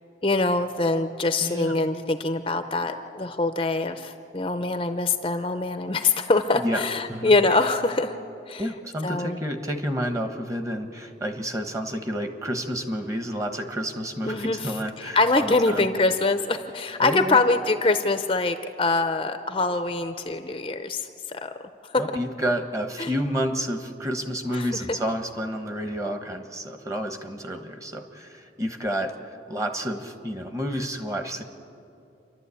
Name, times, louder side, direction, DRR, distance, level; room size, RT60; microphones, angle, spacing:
voice 1, 0.2-8.1 8.5-8.6 9.0-9.4 14.3-21.5 21.9-22.0 23.0-23.1 24.5-25.0, left 3 dB, 30° left, 8 dB, 0.6 m, -24 dB
voice 2, 1.4-1.7 6.6-6.8 7.1-7.3 8.6-15.8 17.0-17.4 22.0-31.4, equal, 15° right, 6 dB, 1.2 m, -30 dB
28.5 x 12.0 x 8.4 m, 2.7 s
head